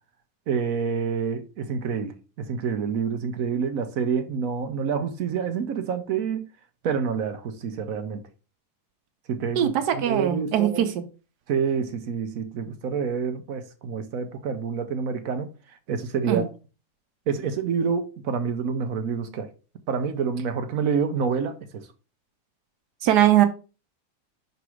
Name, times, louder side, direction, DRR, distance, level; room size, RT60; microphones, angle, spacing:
voice 1, 0.5-6.5 6.8-8.3 9.3-10.9 11.5-15.5 15.9-16.5 17.3-19.5 19.9-21.9, right 6 dB, 65° right, 1.1 m, -27 dB
voice 2, 10.0-11.0 16.3-16.5 23.0-23.5, right 12 dB, 85° right, 1.3 m, -20 dB
5.9 x 4.0 x 4.6 m
omnidirectional pair, 1.7 m